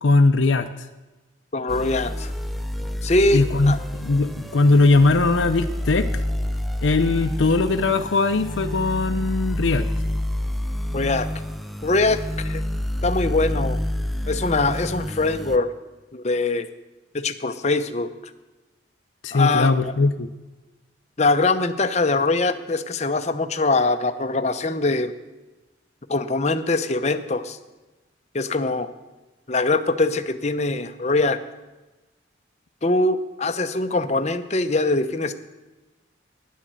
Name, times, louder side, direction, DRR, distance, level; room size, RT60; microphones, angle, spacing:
voice 1, 0.0-0.7 3.3-3.7 4.0-6.1 6.8-9.9 19.2-20.3, left 3 dB, 75° left, 6 dB, 0.6 m, -19 dB
voice 2, 1.5-2.3 3.0-3.8 10.9-11.3 11.8-12.6 13.0-13.8 14.3-15.7 16.1-16.7 17.1-18.1 19.3-19.9 21.2-25.1 26.1-27.6 28.3-28.9 29.5-31.4 32.8-35.3, left 2 dB, 35° left, 9 dB, 0.7 m, -22 dB
sound 1, 1.7-15.6, left 1 dB, ahead, 0.5 m, -28 dB
12.0 x 10.5 x 7.7 m, 1.1 s
head